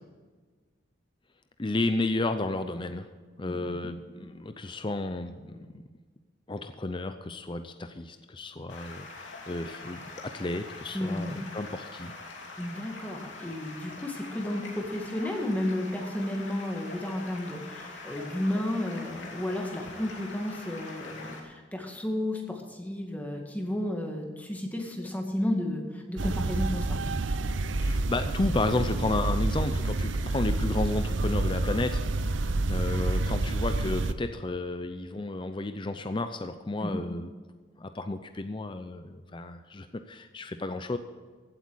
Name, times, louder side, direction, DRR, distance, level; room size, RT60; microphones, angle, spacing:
voice 1, 1.6-3.1 3.4-5.8 6.5-12.1 27.8-37.3 37.8-41.0, left 2 dB, 25° left, 9 dB, 0.6 m, -32 dB
voice 2, 3.5-3.9 10.9-11.5 12.6-27.0 36.8-37.0, left 1 dB, 10° left, 1 dB, 2.0 m, -32 dB
Stream, 8.7-21.4, left 3 dB, 70° left, 2.8 m, -44 dB
sound 1, 26.2-34.1, right 2 dB, 75° right, 0.7 m, -28 dB
16.0 x 8.2 x 6.4 m, 1.5 s
head